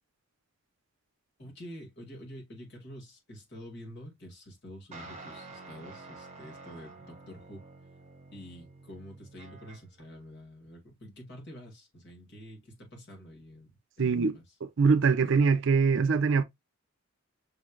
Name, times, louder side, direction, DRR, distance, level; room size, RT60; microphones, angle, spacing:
voice 1, 1.4-7.7 8.3-14.4, equal, 55° left, 2.1 m, -47 dB
sound 1, 4.9-10.1, right 3 dB, 35° right, 1.2 m, -49 dB
voice 2, 14.0-14.4 14.8-16.4, right 5 dB, 60° right, 0.5 m, -23 dB
6.2 x 3.2 x 2.3 m
head